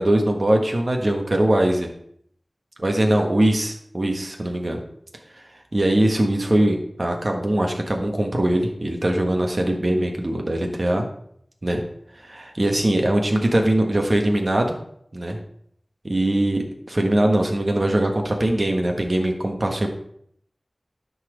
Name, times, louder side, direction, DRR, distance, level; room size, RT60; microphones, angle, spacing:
voice 1, 0.0-1.9 2.8-4.8 5.3-5.4 5.7-11.0 11.6-11.8 12.2-14.7 15.1-15.4 16.0-19.9, right 1 dB, 55° right, 2 dB, 1.5 m, -21 dB
11.0 x 4.2 x 5.1 m, 0.68 s
wide cardioid pair, 45°, 0 cm